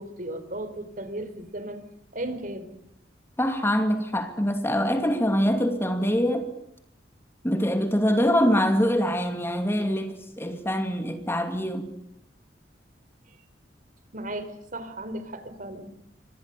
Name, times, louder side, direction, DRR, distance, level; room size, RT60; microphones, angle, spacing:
voice 1, 0.0-1.8 2.1-2.7 14.1-15.9, right 1 dB, 50° right, 4.1 m, -35 dB
voice 2, 3.4-6.5 7.4-11.9, equal, 15° left, 2.7 m, -24 dB
29.0 x 25.0 x 6.8 m
head